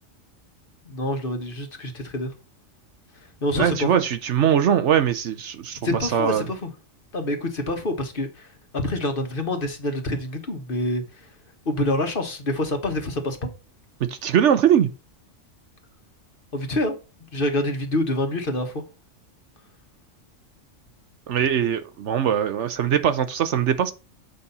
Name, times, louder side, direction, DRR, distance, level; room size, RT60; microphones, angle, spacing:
voice 1, 0.9-2.3 3.4-3.9 5.8-6.7 7.1-8.5 8.7-11.0 11.7-13.5 16.5-17.0 17.3-18.8, left 1 dB, 45° left, 1.3 m, -26 dB
voice 2, 3.6-6.5 14.1-14.9 21.3-23.9, right 9 dB, 65° right, 1.0 m, -21 dB
7.9 x 4.2 x 5.4 m
omnidirectional pair, 1.3 m